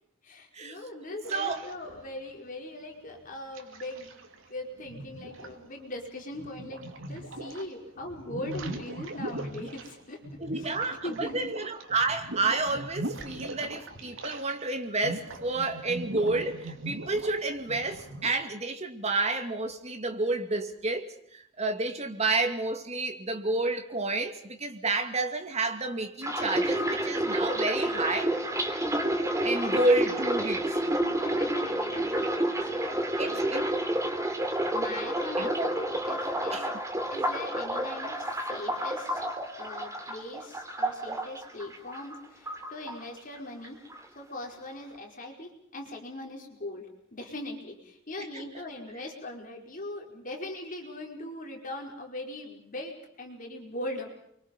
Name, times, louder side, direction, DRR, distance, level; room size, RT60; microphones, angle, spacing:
voice 1, 0.2-4.1 4.5-10.2 10.6-10.7 11.0-11.4 29.5-30.0 31.1-33.8 34.7-36.7 37.1-39.3 39.5-43.8 44.1-54.1, left 1 dB, 45° left, 5.0 m, -40 dB
sound 1, 1.2-2.3 3.1-4.4 4.8-7.7 8.0-14.6 14.9-18.3, right 1 dB, 90° right, 2.8 m, -40 dB
voice 2, 1.3-1.6 10.4-28.3 29.4-30.8 33.2-33.7 35.4-35.7 36.5-36.7, right 2 dB, 35° right, 2.4 m, -30 dB
sound 2, 26.2-42.2 42.5-43.4 43.6-44.0, right 1 dB, 15° right, 3.0 m, -30 dB
29.5 x 24.0 x 5.4 m
head